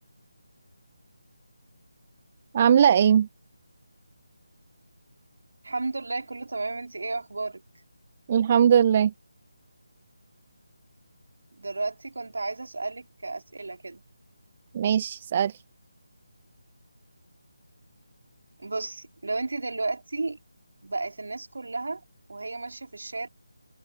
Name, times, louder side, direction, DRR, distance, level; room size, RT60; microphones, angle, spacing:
voice 1, 2.5-3.3 8.3-9.1 14.7-15.5, right 8 dB, 30° right, 1.2 m, -20 dB
voice 2, 5.6-7.6 11.6-14.0 18.6-20.4 20.8-22.0 22.3-23.3, right 3 dB, 60° right, 3.8 m, -33 dB
open air
figure-of-eight pair, 155°, 0 cm